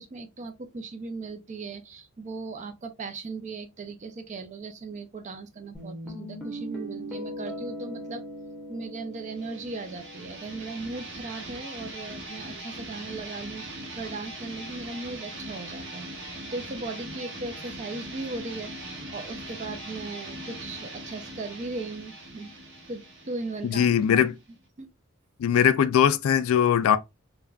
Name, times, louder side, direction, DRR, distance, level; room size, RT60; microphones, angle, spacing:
voice 1, 0.0-8.2 8.7-16.1 16.5-22.5 22.9-24.2 24.8-24.9, right 3 dB, 35° right, 0.4 m, -38 dB
Guitar, 5.7-10.8, equal, ahead, 0.9 m, -39 dB
sound 1, 9.2-24.6, right 1 dB, 60° right, 1.0 m, -41 dB
voice 2, 23.6-24.3 25.4-27.0, left 8 dB, 80° left, 0.3 m, -20 dB
3.3 x 2.2 x 2.3 m
head